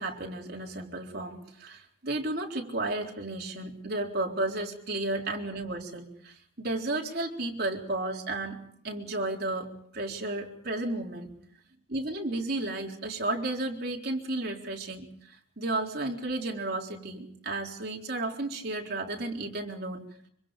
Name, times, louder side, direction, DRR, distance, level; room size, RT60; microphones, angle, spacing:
voice 1, 0.0-8.6 8.8-11.3 11.9-20.0, right 2 dB, 50° right, 0 dB, 4.0 m, -33 dB
25.5 x 25.5 x 5.2 m, 0.65 s
head